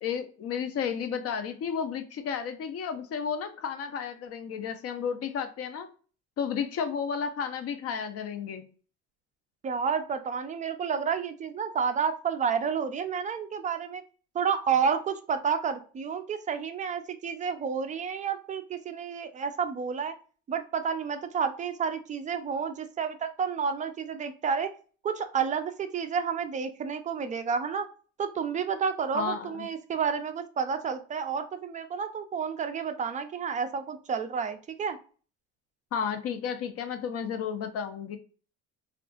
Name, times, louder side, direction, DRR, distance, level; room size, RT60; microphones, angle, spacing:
voice 1, 0.0-5.9 6.4-8.7 29.1-29.7 35.9-38.2, left 7 dB, 50° left, 8 dB, 0.6 m, -32 dB
voice 2, 9.6-14.0 14.3-20.1 20.5-24.7 25.0-27.9 28.2-35.0, right 6 dB, 25° right, 8 dB, 0.3 m, -30 dB
3.5 x 2.4 x 2.2 m, 0.39 s
cardioid pair, 130°, 32 cm